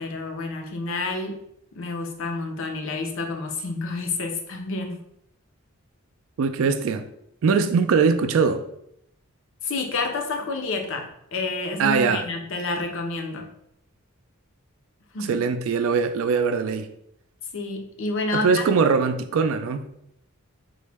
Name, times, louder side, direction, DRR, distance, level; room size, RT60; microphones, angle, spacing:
voice 1, 0.0-1.4 1.7-5.0 9.6-13.5 15.1-15.4 17.5-18.6, left 3 dB, 65° left, 3 dB, 0.6 m, -29 dB
voice 2, 6.4-7.0 7.4-8.6 11.8-12.2 15.3-16.9 18.3-19.8, right 5 dB, 65° right, 9 dB, 0.3 m, -21 dB
3.8 x 2.1 x 3.3 m, 0.74 s
head